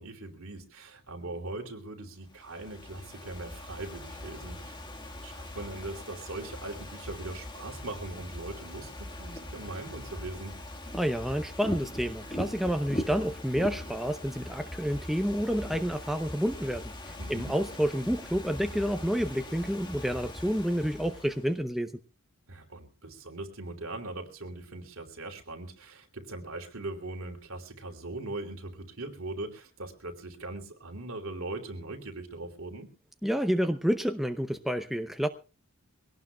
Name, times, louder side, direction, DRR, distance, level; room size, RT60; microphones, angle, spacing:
voice 1, 0.0-4.8 5.2-10.5 17.2-17.5 22.5-32.9, right 2 dB, 65° right, 3 dB, 2.9 m, -40 dB
Ocean / Fireworks, 2.3-21.6, left 1 dB, 20° left, 1.6 m, -41 dB
voice 2, 10.9-21.9 33.2-35.3, equal, ahead, 6 dB, 0.7 m, -29 dB
23.5 x 18.0 x 2.3 m, 0.31 s
head